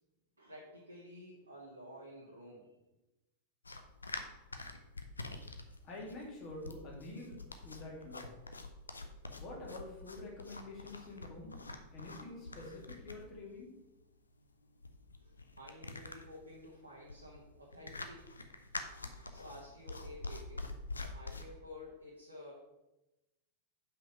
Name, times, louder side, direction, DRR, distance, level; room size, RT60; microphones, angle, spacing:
voice 1, 0.4-2.8 15.2-20.7 21.1-22.5, left 1 dB, 80° right, -3 dB, 1.1 m, -52 dB
sound 1, 3.6-21.4, left 2 dB, 80° left, 0.6 m, -46 dB
voice 2, 5.8-8.3 9.3-11.6 11.9-13.7, left 2 dB, 35° left, -2 dB, 2.5 m, -47 dB
5.8 x 5.3 x 5.5 m, 0.98 s
figure-of-eight pair, 90°, 0 cm